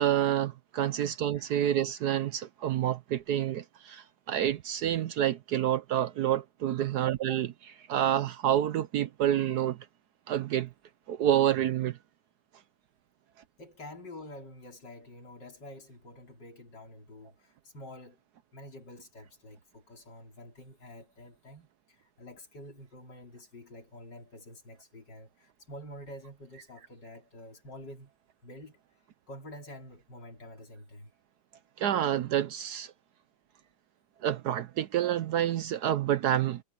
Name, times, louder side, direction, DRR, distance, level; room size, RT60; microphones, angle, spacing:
voice 1, 0.0-7.5 7.9-9.8 10.3-10.7 11.1-12.0 31.8-32.9 34.2-36.6, right 11 dB, 70° right, 1.1 m, -28 dB
voice 2, 13.6-18.2 18.5-28.1 28.4-28.8 29.3-31.1, left 1 dB, 65° left, 4.6 m, -48 dB
omnidirectional pair, 2.0 m